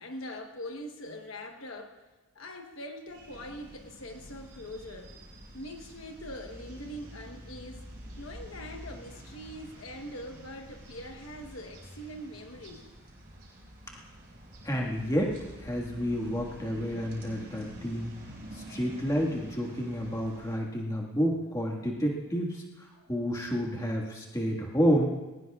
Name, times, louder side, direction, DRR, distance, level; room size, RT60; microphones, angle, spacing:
voice 1, 0.0-2.0 2.3-5.2 5.5-7.8 8.2-12.9 23.0-23.1, left 1 dB, 65° left, 4 dB, 1.1 m, -42 dB
sound 1, 3.1-20.6, equal, 45° right, 5.1 m, -48 dB
voice 2, 14.6-18.1 18.5-25.1, equal, 15° left, -2 dB, 1.7 m, -30 dB
21.0 x 19.0 x 2.4 m, 1.2 s
head